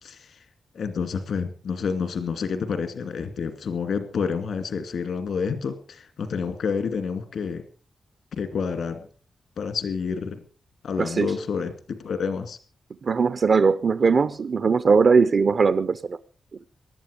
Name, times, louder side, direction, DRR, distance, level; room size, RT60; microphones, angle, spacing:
voice 1, 0.0-0.4 0.7-7.6 8.3-9.1 9.6-10.4 10.8-12.6, left 6 dB, 80° left, 2.4 m, -29 dB
voice 2, 11.0-11.3 13.0-16.2, right 5 dB, 55° right, 0.6 m, -20 dB
19.0 x 12.0 x 5.2 m
wide cardioid pair, 115°, 0 cm